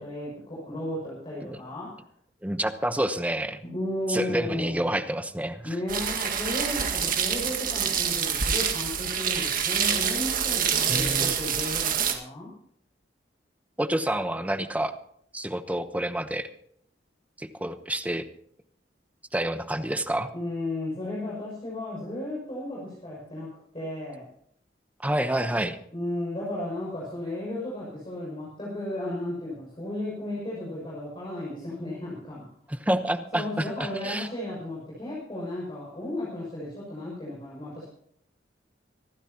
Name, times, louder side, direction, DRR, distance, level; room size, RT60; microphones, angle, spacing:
voice 1, 0.0-2.0 3.6-4.9 5.6-12.5 20.3-24.3 25.9-32.5 33.3-37.9, left 1 dB, 30° left, -5 dB, 6.3 m, -34 dB
voice 2, 2.4-3.6 4.1-5.7 10.9-11.3 13.8-15.0 15.3-16.5 17.4-18.3 19.3-20.3 25.0-25.8 32.7-34.3, right 1 dB, 10° right, 8 dB, 0.9 m, -28 dB
sound 1, 5.9-12.1, right 8 dB, 55° right, 1.9 m, -26 dB
25.5 x 12.0 x 3.0 m, 0.66 s
head